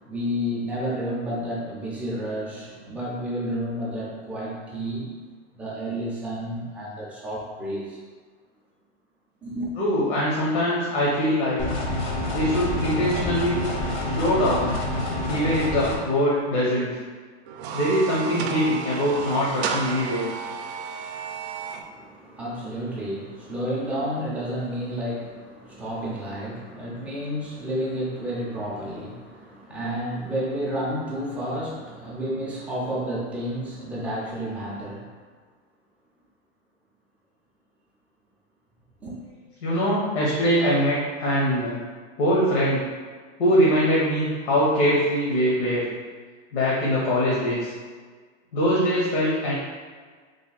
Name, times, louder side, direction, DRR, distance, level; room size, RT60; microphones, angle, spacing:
voice 1, 0.0-5.1 5.5-8.0 9.4-9.7 21.8-35.1 39.0-39.1, equal, 5° right, -6 dB, 0.3 m, -31 dB
voice 2, 9.8-11.7 12.3-13.7 14.0-14.7 15.3-17.0 17.7-20.3 39.6-41.8 42.2-42.8 43.4-45.9 46.5-47.7 48.5-49.5, equal, 80° left, -6 dB, 1.1 m, -22 dB
sound 1, 11.6-16.0, left 1 dB, 65° left, 0.8 m, -27 dB
sound 2, 17.5-21.8, right 6 dB, 85° right, 0.5 m, -32 dB
3.3 x 2.2 x 4.0 m, 1.6 s
supercardioid pair, 155°, 33 cm